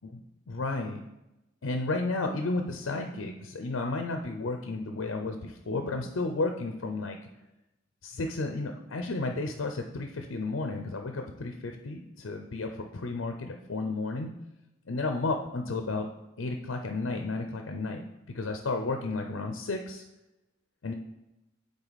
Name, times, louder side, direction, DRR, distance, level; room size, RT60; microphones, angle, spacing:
voice 1, 0.5-1.0 1.6-7.2 8.0-14.3 14.9-16.1 16.4-20.0 20.8-20.9, left 3 dB, 80° left, 4 dB, 0.6 m, -32 dB
8.9 x 3.9 x 4.1 m, 0.95 s
head